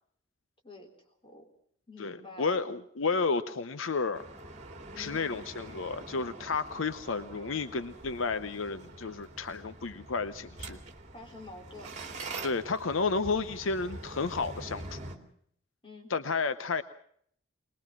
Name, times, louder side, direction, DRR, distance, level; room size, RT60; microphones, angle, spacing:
voice 1, 0.6-1.5 1.9-2.7 4.9-5.2 11.1-12.0 15.8-16.1, left 2 dB, 25° left, 2 dB, 4.1 m, -48 dB
voice 2, 2.0-4.2 5.0-10.8 12.4-15.0 16.1-16.8, left 4 dB, 75° left, 12 dB, 0.8 m, -32 dB
sound 1, 4.1-15.2, right 2 dB, 35° right, 2.3 m, -45 dB
22.0 x 21.0 x 6.0 m, 0.65 s
head